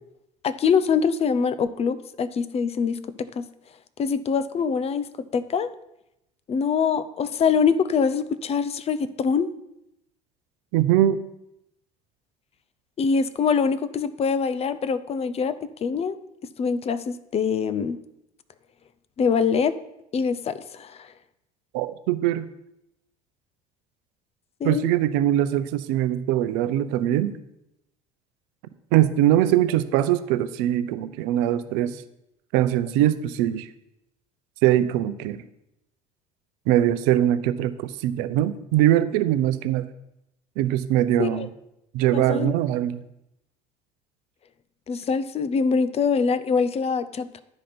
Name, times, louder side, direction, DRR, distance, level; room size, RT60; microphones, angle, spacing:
voice 1, 0.4-3.5 4.0-5.1 5.3-5.7 6.5-9.5 13.0-15.5 15.8-16.2 16.6-18.0 19.2-19.7 20.1-21.1 24.6-24.9 41.2-41.5 42.1-42.5 44.9-47.4, left 6 dB, 35° left, 14 dB, 0.7 m, -24 dB
voice 2, 10.7-11.2 21.7-22.5 24.6-27.3 28.9-32.0 32.5-33.7 34.6-35.4 36.7-39.9 40.6-41.5 41.9-43.0, right 12 dB, 65° right, 12 dB, 0.6 m, -22 dB
10.5 x 5.0 x 5.9 m, 0.85 s
hypercardioid pair, 65°, 18 cm